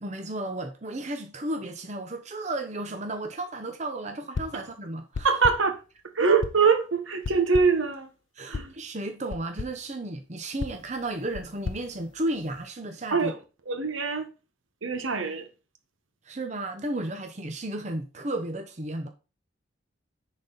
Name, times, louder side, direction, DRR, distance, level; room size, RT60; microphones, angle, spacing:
voice 1, 0.0-5.3 8.4-13.3 16.2-19.1, right 1 dB, 35° right, 0.8 m, -33 dB
sound 1, 4.3-4.7 5.1-5.8 6.4-6.8 7.2-7.9 8.5-8.8 9.3-9.8 10.6-12.7, left 4 dB, 70° left, 0.5 m, -36 dB
voice 2, 5.2-5.8 6.1-8.1 8.5-8.7 13.1-13.4 13.7-14.3 14.8-15.5, right 5 dB, 80° right, 1.2 m, -23 dB
10.0 x 4.2 x 4.0 m
head